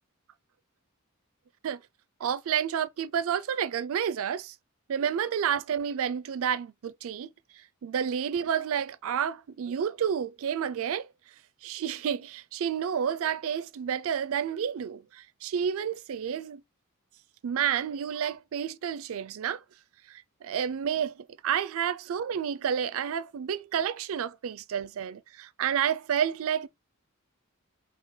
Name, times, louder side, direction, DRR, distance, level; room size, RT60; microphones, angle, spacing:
voice 1, 2.2-4.5 4.9-7.3 7.8-11.1 11.6-16.6 17.4-19.6 20.1-26.7, right 8 dB, 70° right, 0.4 m, -30 dB
3.9 x 3.2 x 3.6 m
head